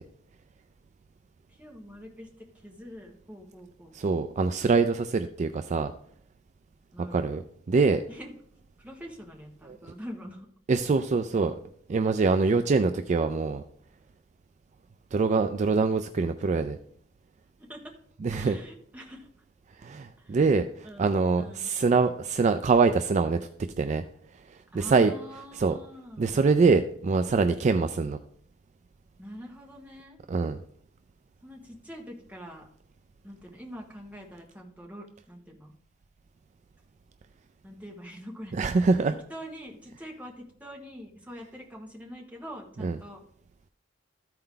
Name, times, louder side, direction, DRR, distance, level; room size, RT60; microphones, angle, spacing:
voice 1, 1.5-4.0 6.9-7.4 8.1-8.3 8.8-10.5 12.4-12.5 17.6-17.9 18.3-19.3 20.2-20.4 20.8-21.7 24.7-26.3 29.2-30.2 31.4-32.6 33.2-35.7 37.6-38.5 39.1-43.2, equal, 10° right, -1 dB, 1.5 m, -44 dB
voice 2, 3.9-5.9 7.1-7.4 7.7-8.0 9.7-9.8 10.7-11.5 11.9-13.6 15.1-16.8 18.2-18.6 19.8-23.4 23.8-24.0 24.5-25.1 25.5-25.7 26.2-28.2 30.3-30.6 38.5-39.1 42.8-43.0, right 4 dB, 40° right, 9 dB, 0.3 m, -24 dB
13.5 x 4.5 x 3.8 m, 0.64 s
head